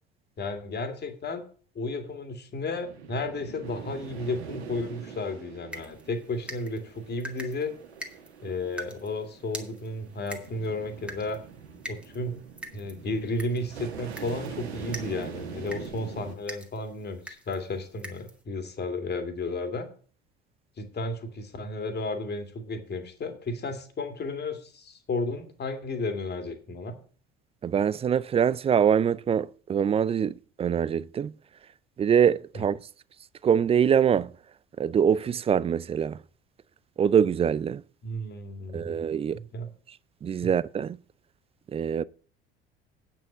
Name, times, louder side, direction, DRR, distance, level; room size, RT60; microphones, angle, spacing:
voice 1, 0.4-1.4 1.8-7.7 8.4-11.4 11.9-12.4 12.7-19.9 20.8-26.9 32.5-32.7 38.0-39.0 39.3-39.7 40.4-40.5, left 2 dB, 30° left, 2.2 m, -33 dB
sound 1, 2.8-16.3, right 6 dB, 75° right, 1.5 m, -43 dB
sound 2, 5.7-18.4, equal, 5° right, 1.9 m, -45 dB
voice 2, 27.6-31.3 32.0-32.8 33.4-34.3 34.8-36.2 37.0-37.8 38.7-39.4 40.2-41.0 41.7-42.0, right 8 dB, 20° right, 0.4 m, -24 dB
8.7 x 6.1 x 8.2 m
figure-of-eight pair, 60°, 32 cm